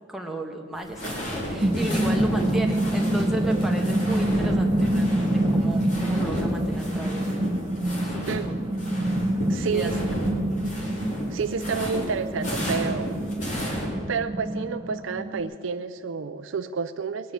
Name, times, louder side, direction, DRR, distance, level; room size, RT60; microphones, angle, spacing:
voice 1, 0.1-7.5 8.0-8.6 9.7-10.0, right 1 dB, ahead, 1 dB, 1.3 m, -35 dB
sound 1, 0.8-8.4 8.7-13.9, equal, 40° left, 3.3 m, -32 dB
sound 2, 1.1-15.4, right 1 dB, 25° right, 0.9 m, -26 dB
voice 2, 9.5-9.9 11.3-13.2 14.1-17.3, right 5 dB, 75° right, 10 dB, 0.5 m, -29 dB
22.0 x 9.5 x 6.4 m, 2.2 s
head